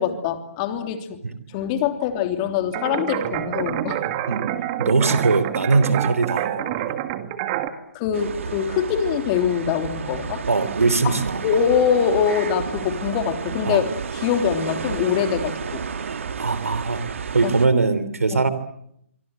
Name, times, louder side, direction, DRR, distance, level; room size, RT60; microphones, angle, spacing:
voice 1, 0.0-1.2 1.5-4.0 7.9-10.4 11.0-13.8 14.1-15.8 17.4-17.5 18.3-18.4, left 8 dB, 30° left, 6 dB, 3.2 m, -23 dB
sound 1, 2.7-7.7, right 12 dB, 30° right, 2.0 m, -27 dB
voice 2, 4.8-7.0 10.5-11.5 13.6-13.8 16.4-17.0 17.3-18.5, right 4 dB, 80° right, 13 dB, 3.2 m, -21 dB
sound 2, 8.1-17.7, right 6 dB, 60° right, 2.0 m, -31 dB
25.5 x 24.5 x 7.8 m, 0.73 s
figure-of-eight pair, 140°, 8 cm